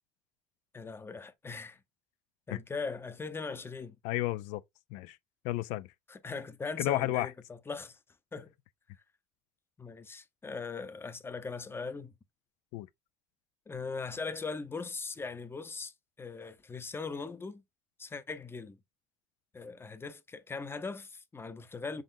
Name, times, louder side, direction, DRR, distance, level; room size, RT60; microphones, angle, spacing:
voice 1, 0.7-1.8 2.5-4.0 6.1-8.0 8.3-8.5 9.8-12.1 13.7-17.6 18.0-18.8 19.5-22.0, left 4 dB, 20° left, 0.7 m, -40 dB
voice 2, 4.0-4.6 4.9-5.2 5.4-5.9 6.8-7.3 12.7-12.9, left 16 dB, 75° left, 0.4 m, -32 dB
5.1 x 3.8 x 2.5 m
supercardioid pair, 95°, 12 cm